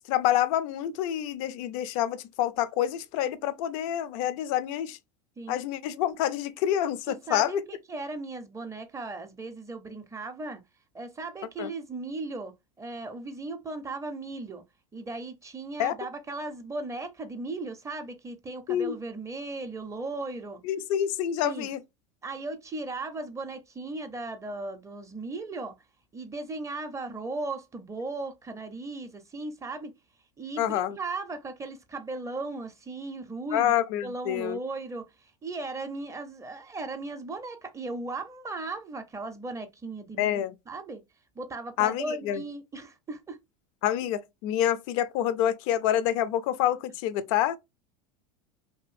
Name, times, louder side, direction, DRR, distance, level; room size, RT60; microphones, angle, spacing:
voice 1, 0.1-5.0 5.5-7.6 11.6-11.7 15.8-15.9 18.7-19.0 20.7-21.8 30.6-31.0 33.5-34.6 40.2-40.5 41.8-42.4 43.8-47.6, left 11 dB, 60° left, 0.4 m, -27 dB
voice 2, 7.1-10.6 10.9-14.6 14.9-20.6 21.4-21.7 22.2-25.7 26.1-29.9 30.4-33.8 34.0-40.4 40.7-41.0 41.4-43.4, right 3 dB, 15° right, 0.5 m, -37 dB
2.7 x 2.5 x 2.4 m
hypercardioid pair, 95°, 19 cm